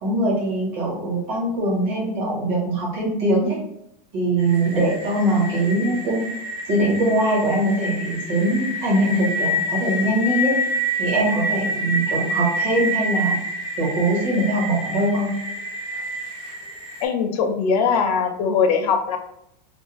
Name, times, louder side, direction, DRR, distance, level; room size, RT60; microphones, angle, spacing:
voice 1, 0.0-3.6 4.1-6.3 6.7-10.5 11.0-13.4 13.8-15.3, right 1 dB, 45° right, -4 dB, 1.2 m, -22 dB
sound 1, 4.4-17.0, equal, 65° right, 1.2 m, -28 dB
voice 2, 17.0-19.2, left 6 dB, 65° left, 5 dB, 0.5 m, -21 dB
2.5 x 2.1 x 3.0 m, 0.78 s
supercardioid pair, 175°, 21 cm